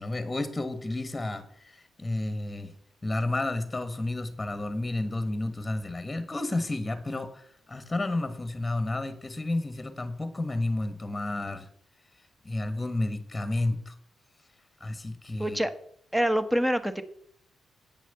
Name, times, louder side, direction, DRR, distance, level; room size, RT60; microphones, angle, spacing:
voice 1, 0.0-2.7 3.0-11.7 12.4-13.9 14.8-15.6, left 2 dB, 20° left, 10 dB, 1.4 m, -31 dB
voice 2, 15.4-15.7 16.1-17.0, equal, 5° right, 10 dB, 1.1 m, -25 dB
8.9 x 6.4 x 6.7 m, 0.66 s
cardioid pair, 60°, 0 cm